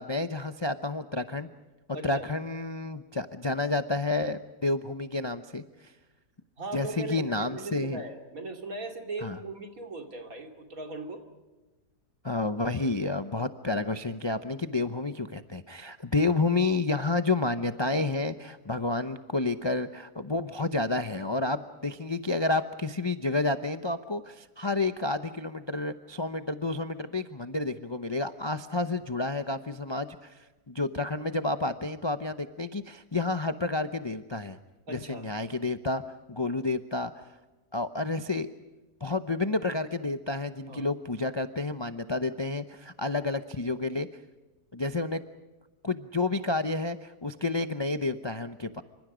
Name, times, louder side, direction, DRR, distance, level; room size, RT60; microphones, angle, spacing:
voice 1, 0.0-1.5 2.0-5.9 6.7-8.0 9.2-9.4 12.2-34.6 34.9-36.0 36.3-37.3 37.7-38.5 39.0-44.2 44.7-45.2 45.8-48.8, left 3 dB, 30° left, 9 dB, 0.5 m, -30 dB
voice 2, 1.9-2.2 6.6-11.2 34.9-35.3 40.7-40.9, right 2 dB, 55° right, 4 dB, 3.0 m, -39 dB
27.0 x 25.5 x 5.1 m, 1.2 s
omnidirectional pair, 1.8 m